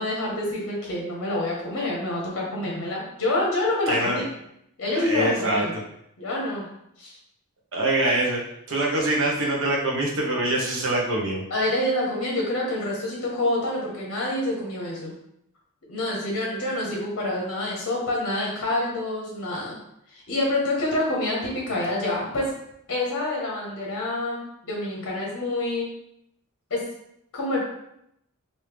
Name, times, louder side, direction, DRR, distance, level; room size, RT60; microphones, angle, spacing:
voice 1, 0.0-4.3 4.8-5.7 6.2-6.6 7.0-7.2 11.5-15.1 15.9-19.8 20.1-22.5 22.9-24.4 24.7-25.9 26.7-26.8 27.3-27.6, left 1 dB, 55° left, -3 dB, 0.8 m, -27 dB
voice 2, 3.9-4.2 4.9-5.8 7.7-8.4 8.7-11.4, right 1 dB, 60° right, -2 dB, 0.8 m, -24 dB
3.1 x 2.7 x 3.3 m, 0.77 s
head